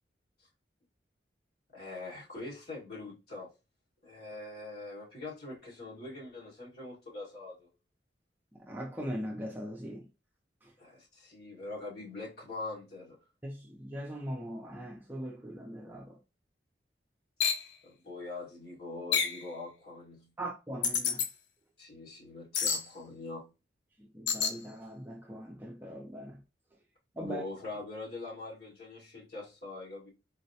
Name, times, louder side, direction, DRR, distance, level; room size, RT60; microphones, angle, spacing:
voice 1, 1.7-3.5 4.0-7.7 10.8-13.2 17.8-20.3 21.8-23.5 27.2-30.1, left 2 dB, 60° left, 1.7 m, -43 dB
voice 2, 8.5-10.1 13.4-16.2 20.4-21.2 24.1-26.4 27.2-27.4, equal, 10° right, 0.5 m, -40 dB
sound 1, 17.4-17.7 19.1-19.4 20.8-21.3 22.5-22.8 24.3-24.6, left 6 dB, 85° left, 0.5 m, -28 dB
4.0 x 2.1 x 2.7 m
head